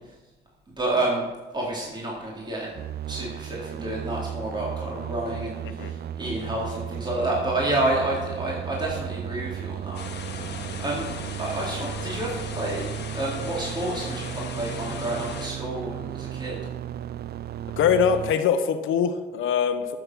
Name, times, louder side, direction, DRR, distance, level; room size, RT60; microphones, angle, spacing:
voice 1, 0.8-1.2 1.5-2.8 3.1-10.0 10.8-11.1 11.4-12.9 13.2-16.6, right 1 dB, 20° right, -4 dB, 3.8 m, -29 dB
sound 1, 2.7-18.4, right 10 dB, 55° right, 0.5 m, -35 dB
sound 2, 9.9-15.5, left 6 dB, 55° left, 1.5 m, -38 dB
voice 2, 17.8-20.0, left 7 dB, 85° left, 9 dB, 1.2 m, -23 dB
13.5 x 7.7 x 6.2 m, 1.2 s
cardioid pair, 90°, 20 cm